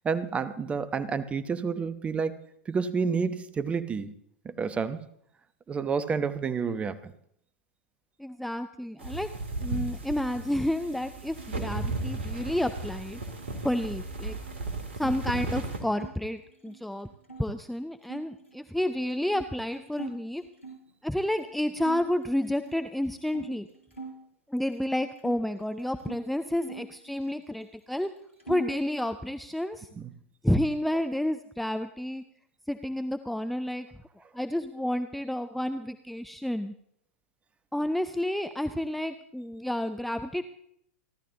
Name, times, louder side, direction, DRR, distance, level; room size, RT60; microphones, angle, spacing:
voice 1, 0.0-2.4 2.7-4.1 4.4-5.0 5.7-7.1 15.0-15.1 30.0-30.1, right 5 dB, 15° right, 1.0 m, -29 dB
voice 2, 8.2-9.3 9.6-13.2 13.6-14.4 15.0-17.1 17.4-20.4 21.0-23.7 24.5-28.1 28.5-29.9 30.4-32.3 32.7-33.9 34.3-36.7 37.7-40.4, left 1 dB, ahead, 0.6 m, -30 dB
sound 1, 9.0-15.8, right 2 dB, 70° right, 3.0 m, -35 dB
sound 2, 10.4-16.1 16.4-17.5 18.0-20.9 21.4-21.5 21.8-24.2 24.6-26.2 26.6-27.7 28.0-28.9, right 4 dB, 85° left, 4.5 m, -47 dB
29.0 x 12.5 x 2.9 m
figure-of-eight pair, 95°, 7 cm